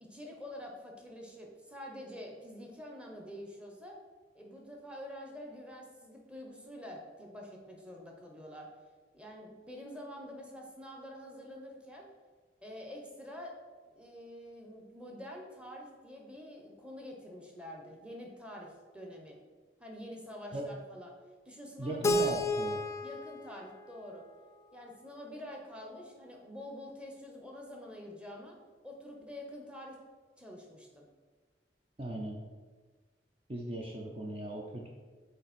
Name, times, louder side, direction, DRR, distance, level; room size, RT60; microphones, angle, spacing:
voice 1, 0.0-4.0 4.3-8.7 9.1-12.1 12.6-13.6 13.8-19.4 19.8-21.1 21.4-22.3 23.0-24.2 24.7-30.0 30.4-31.1, left 1 dB, 5° right, 0 dB, 1.0 m, -47 dB
voice 2, 21.8-22.8 32.0-32.4 33.5-34.9, right 1 dB, 35° right, -1 dB, 0.7 m, -38 dB
Keyboard (musical), 22.0-25.0, left 1 dB, 15° left, 0.4 m, -33 dB
6.5 x 4.4 x 4.3 m, 1.4 s
head